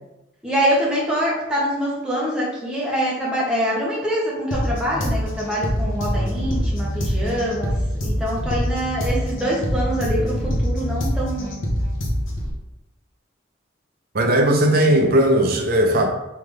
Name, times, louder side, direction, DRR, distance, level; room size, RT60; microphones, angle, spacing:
voice 1, 0.4-7.7 8.0-11.5, equal, 5° right, -6 dB, 1.1 m, -24 dB
sound 1, 4.5-12.5, equal, 75° left, 0.9 m, -24 dB
voice 2, 14.1-16.1, right 1 dB, 50° right, 2 dB, 0.7 m, -17 dB
3.8 x 3.4 x 3.2 m, 0.96 s
head